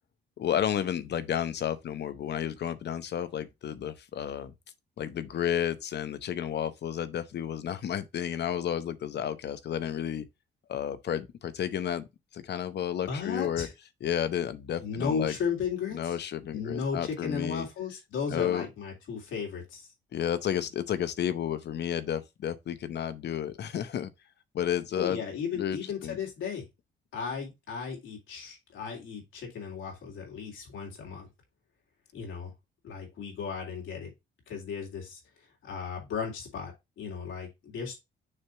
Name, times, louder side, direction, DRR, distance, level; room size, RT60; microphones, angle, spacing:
voice 1, 0.4-4.5 5.0-10.3 10.7-12.1 12.3-13.7 14.0-15.3 15.9-17.7 18.3-18.7 20.1-24.1 24.5-25.2 25.5-26.2, left 9 dB, 60° left, 0.8 m, -31 dB
voice 2, 13.1-13.7 14.8-16.2 16.5-19.9 25.0-26.6 27.1-31.3 32.1-32.5 32.8-34.1 34.5-35.2 35.6-37.9, left 6 dB, 75° left, 3.3 m, -35 dB
6.5 x 2.9 x 5.5 m
cardioid pair, 90°, 20 cm